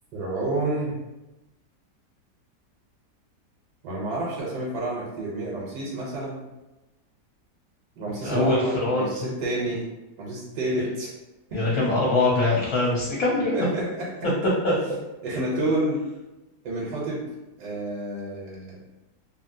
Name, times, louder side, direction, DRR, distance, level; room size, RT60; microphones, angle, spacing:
voice 1, 0.1-1.0 3.8-6.4 8.0-9.9 10.2-11.1 11.5-11.6 13.5-14.3 15.2-16.0 16.6-17.2 17.6-18.8, right 1 dB, 80° right, -5 dB, 1.2 m, -29 dB
voice 2, 8.2-9.3 9.7-9.8 11.5-13.7 14.6-14.7, left 2 dB, 65° left, -5 dB, 1.0 m, -23 dB
2.7 x 2.6 x 2.6 m, 1.0 s
omnidirectional pair, 1.8 m